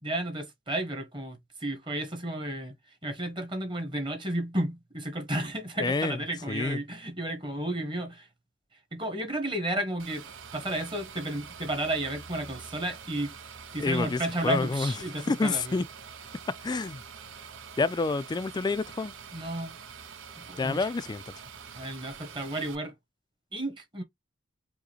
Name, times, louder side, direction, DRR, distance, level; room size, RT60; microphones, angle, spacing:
voice 1, 0.0-8.3 8.7-10.3 10.5-13.3 13.7-15.8 19.3-19.8 20.3-20.9 21.7-22.9 23.5-24.0, right 1 dB, 25° right, 1.1 m, -33 dB
voice 2, 5.8-6.2 6.5-6.8 13.8-14.9 15.3-15.9 16.6-17.0 17.8-19.1 20.6-21.2, left 3 dB, 20° left, 0.3 m, -28 dB
sound 1, 10.0-22.8, right 6 dB, 85° right, 0.7 m, -46 dB
4.7 x 2.1 x 3.0 m
head